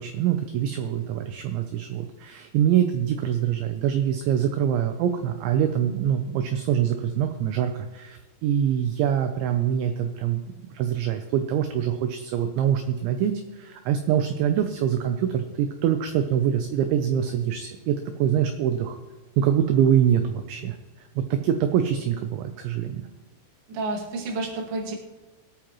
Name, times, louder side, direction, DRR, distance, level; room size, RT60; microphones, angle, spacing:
voice 1, 0.0-19.0 19.4-20.8 21.2-23.0, right 9 dB, 80° right, 6 dB, 2.7 m, -24 dB
voice 2, 23.7-24.9, right 2 dB, 45° right, -2 dB, 2.1 m, -30 dB
25.0 x 8.9 x 3.1 m, 1.3 s
omnidirectional pair, 6.0 m